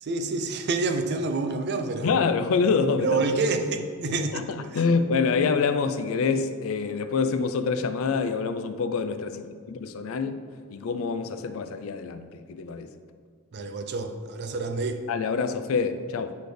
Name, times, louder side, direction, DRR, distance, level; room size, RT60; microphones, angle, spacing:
voice 1, 0.0-2.1 3.0-4.4 13.5-15.0, right 3 dB, 50° right, 7 dB, 0.5 m, -28 dB
voice 2, 2.0-3.4 4.3-10.3 10.7-12.9 15.1-16.4, left 5 dB, 70° left, 10 dB, 0.4 m, -26 dB
8.2 x 4.1 x 3.3 m, 2.1 s
head